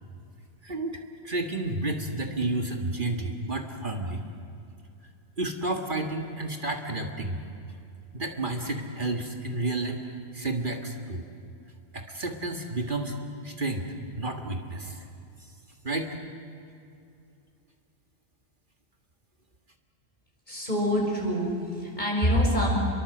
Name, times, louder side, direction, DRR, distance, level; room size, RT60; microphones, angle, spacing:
voice 1, 0.6-4.2 5.4-7.4 8.1-11.2 11.9-13.2 13.4-15.1 15.8-16.2, right 2 dB, 50° right, 4 dB, 2.0 m, -31 dB
voice 2, 20.5-22.7, equal, 45° left, -1 dB, 6.3 m, -25 dB
30.0 x 23.0 x 7.9 m, 2.6 s
omnidirectional pair, 1.1 m